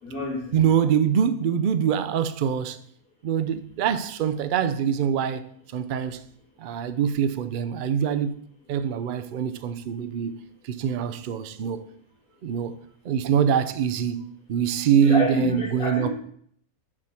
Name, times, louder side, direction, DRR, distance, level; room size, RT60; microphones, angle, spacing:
voice 1, 0.0-0.7 15.0-16.1, equal, 85° left, 2.6 m, -28 dB
voice 2, 0.5-2.8 3.2-5.4 5.7-6.2 6.6-11.9 12.4-12.8 13.0-14.2 14.5-16.1, right 8 dB, 80° right, 0.4 m, -24 dB
6.3 x 4.4 x 6.2 m
omnidirectional pair, 1.5 m